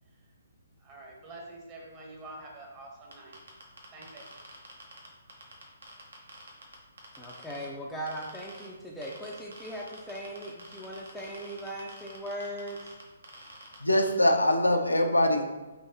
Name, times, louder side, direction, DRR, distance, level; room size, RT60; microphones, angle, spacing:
voice 1, 0.8-3.4 3.9-4.4, right 2 dB, 25° right, -1 dB, 1.0 m, -47 dB
sound 1, 3.1-7.7 8.1-8.7 9.0-14.1, right 2 dB, 70° right, 1.0 m, -48 dB
voice 2, 7.2-12.8, equal, ahead, -5 dB, 0.5 m, -39 dB
voice 3, 13.8-15.5, left 1 dB, 85° left, 3 dB, 0.6 m, -23 dB
5.4 x 3.1 x 2.9 m, 1.2 s
figure-of-eight pair, 130°, 0 cm